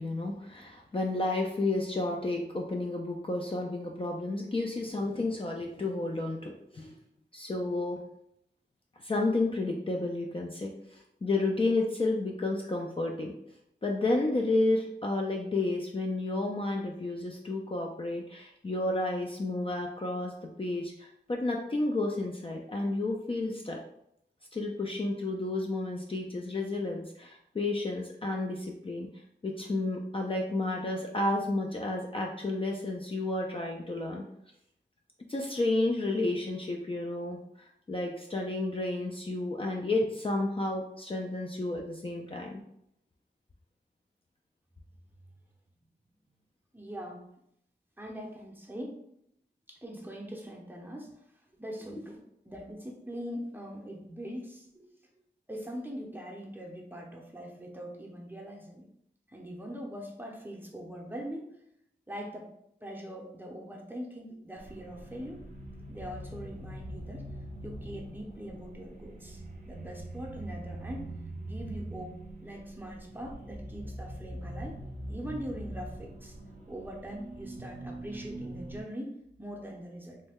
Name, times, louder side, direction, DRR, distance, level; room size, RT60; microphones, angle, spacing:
voice 1, 0.0-7.0 7.3-8.0 9.0-13.3 13.8-23.8 24.5-29.1 29.4-34.2 35.3-42.6, left 2 dB, 30° left, 0 dB, 0.4 m, -31 dB
voice 2, 46.7-47.2 48.0-49.0 49.7-51.1 51.6-52.2 52.5-54.9 55.5-58.9 59.3-61.6 62.1-62.5 62.8-65.4 65.9-67.3 67.6-71.1 71.4-72.1 72.4-74.8 75.1-76.4 76.7-80.2, equal, 10° right, -1 dB, 0.6 m, -42 dB
sound 1, 64.6-78.8, right 1 dB, 50° right, 0.6 m, -43 dB
3.1 x 2.2 x 3.5 m, 0.75 s
wide cardioid pair, 75°, 19 cm